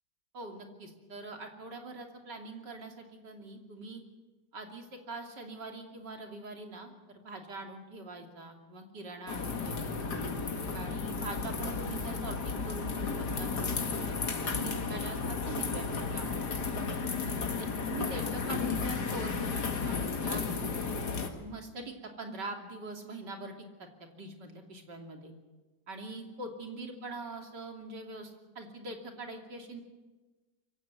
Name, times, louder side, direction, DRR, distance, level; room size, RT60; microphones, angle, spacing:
voice 1, 0.3-4.0 4.5-10.2 10.7-16.3 17.6-20.5 21.4-23.9 24.1-25.3 25.9-29.8, right 2 dB, 85° right, 3 dB, 3.5 m, -43 dB
sound 1, 9.3-21.3, left 4 dB, 70° left, 2.5 m, -33 dB
24.0 x 16.0 x 9.5 m, 1.2 s
omnidirectional pair, 1.8 m